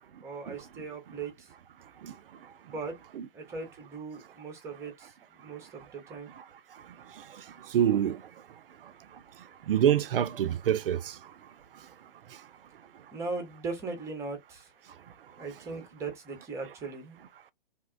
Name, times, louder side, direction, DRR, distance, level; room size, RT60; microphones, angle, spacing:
voice 1, 0.2-1.5 2.7-3.0 3.3-6.3 13.1-14.7 15.4-17.2, right 4 dB, 10° right, 0.6 m, -39 dB
voice 2, 7.7-8.2 9.7-11.0, right 10 dB, 70° right, 0.4 m, -25 dB
2.8 x 2.1 x 2.3 m
figure-of-eight pair, 125°, 29 cm